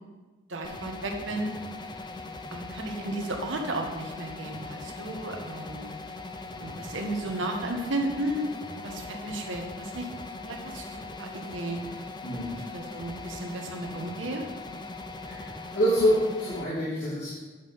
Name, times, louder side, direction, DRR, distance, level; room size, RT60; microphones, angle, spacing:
voice 1, 0.5-1.5 2.5-5.9 6.6-8.5 8.8-10.1 10.5-11.8 12.7-14.5, right 1 dB, 80° right, 2 dB, 1.3 m, -34 dB
sound 1, 0.6-16.6, left 3 dB, 25° left, 0.6 m, -40 dB
voice 2, 12.2-12.6 15.2-15.5 15.7-17.3, equal, 65° left, -11 dB, 2.9 m, -26 dB
9.5 x 5.7 x 5.5 m, 1.3 s
head